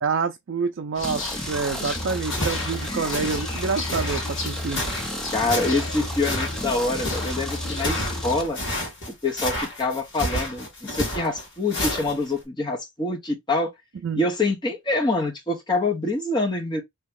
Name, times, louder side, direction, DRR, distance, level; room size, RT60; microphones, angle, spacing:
voice 1, 0.0-4.8 14.0-14.2, right 5 dB, 65° right, 0.4 m, -27 dB
sound 1, 0.9-8.5, left 3 dB, 75° left, 1.4 m, -36 dB
sound 2, 1.0-8.4, equal, 5° left, 0.5 m, -32 dB
sound 3, 2.1-12.4, left 1 dB, 60° left, 1.8 m, -30 dB
voice 2, 5.3-8.6 9.1-13.7 14.1-16.8, left 2 dB, 20° left, 1.0 m, -25 dB
2.9 x 2.9 x 3.6 m
head